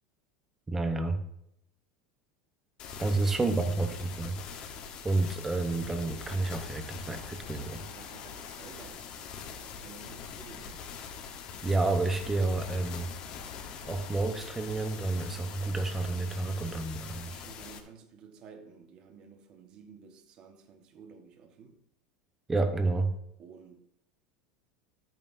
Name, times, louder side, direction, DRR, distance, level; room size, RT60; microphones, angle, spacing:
voice 1, 0.7-1.2 3.0-4.8 5.0-7.8 11.6-13.1 13.8-17.3 22.5-23.1, right 3 dB, 10° right, 7 dB, 0.9 m, -30 dB
sound 1, 2.8-17.8, left 6 dB, 30° left, 1.1 m, -43 dB
voice 2, 3.1-3.4 7.9-10.8 17.2-21.8 23.4-23.8, right 5 dB, 30° right, 5 dB, 1.3 m, -52 dB
Train, 6.1-16.6, left 6 dB, 60° left, 3.0 m, -54 dB
13.0 x 9.1 x 2.7 m, 0.78 s
supercardioid pair, 175°, 3 cm